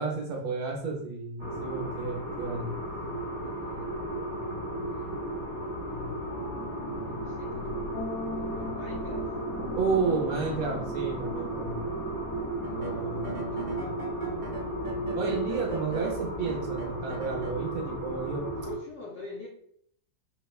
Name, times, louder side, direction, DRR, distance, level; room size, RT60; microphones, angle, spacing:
voice 1, 0.0-2.7 9.8-11.9 12.8-13.2 15.1-18.5, right 4 dB, 85° right, 0 dB, 1.6 m, -31 dB
sound 1, 1.4-18.8, right 1 dB, 5° left, 0.9 m, -34 dB
voice 2, 3.4-4.0 4.8-5.3 7.0-11.0 12.7-14.0 18.6-19.5, left 2 dB, 90° left, -3 dB, 0.6 m, -45 dB
sound 2, 6.3-15.4, left 2 dB, 70° left, 1.6 m, -42 dB
Synth Lead with Arp, 12.6-17.6, right 4 dB, 65° right, 0.6 m, -40 dB
5.1 x 2.1 x 2.3 m, 0.66 s
omnidirectional pair, 2.0 m